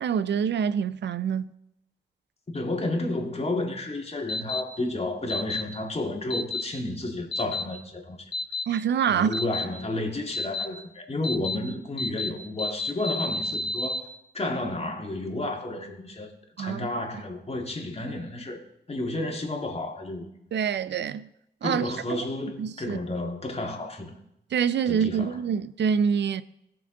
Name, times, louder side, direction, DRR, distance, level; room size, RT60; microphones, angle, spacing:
voice 1, 0.0-1.5 8.7-9.4 16.6-16.9 20.5-21.3 21.6-22.2 22.6-23.0 24.5-26.4, right 7 dB, 75° right, 0.5 m, -26 dB
voice 2, 2.5-8.3 9.1-14.1 14.3-16.3 16.6-18.6 18.9-20.2 21.6-24.2 24.9-25.4, left 2 dB, 35° left, 2.0 m, -31 dB
sound 1, 4.3-4.6 5.3-5.6 6.3-6.6 7.3-7.6 8.3-8.6 9.3-9.6 10.3-10.6 11.2-11.5 12.0-12.3 12.6-14.0, left 2 dB, 65° left, 1.3 m, -30 dB
17.0 x 6.0 x 3.7 m
cardioid pair, 60°, 18 cm